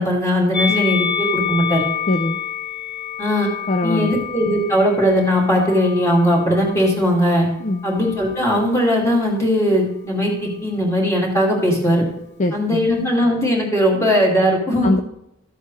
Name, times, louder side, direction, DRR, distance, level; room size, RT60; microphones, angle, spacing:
voice 1, 0.0-1.8 3.2-3.5 3.8-7.5 7.8-12.0 12.5-14.9, equal, 15° left, -2 dB, 2.4 m, -18 dB
Musical instrument, 0.5-6.9 7.8-8.8, left 7 dB, 50° left, 0.9 m, -28 dB
voice 2, 2.1-2.4 3.7-4.2 7.6-7.9 12.4-12.9 14.8-15.0, left 2 dB, 35° left, 6 dB, 0.4 m, -21 dB
13.5 x 7.9 x 3.2 m, 0.82 s
head